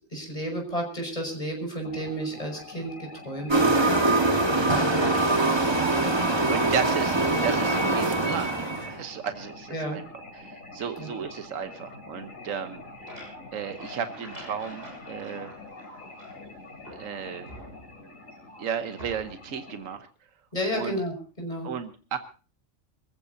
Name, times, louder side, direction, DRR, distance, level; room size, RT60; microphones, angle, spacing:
voice 1, 0.1-3.8 9.7-10.0 11.0-11.1 20.5-21.7, equal, 25° left, 2 dB, 5.8 m, -32 dB
sound 1, 1.8-20.0, left 2 dB, 75° left, 3.9 m, -45 dB
sound 2, 3.5-9.0, right 2 dB, 20° right, 1.5 m, -23 dB
voice 2, 4.5-4.9 5.1-5.5 6.0-8.5 8.9-10.0 10.3-12.8 13.5-15.5 16.9-17.5 18.0-18.1 18.6-20.1 20.7-21.0 21.6-22.2, right 7 dB, 75° right, 8 dB, 1.4 m, -34 dB
sound 3, 12.7-16.5 16.8-18.2 19.0-19.5, equal, 50° right, 6.4 m, -47 dB
25.5 x 15.0 x 2.7 m, 0.36 s
omnidirectional pair, 1.4 m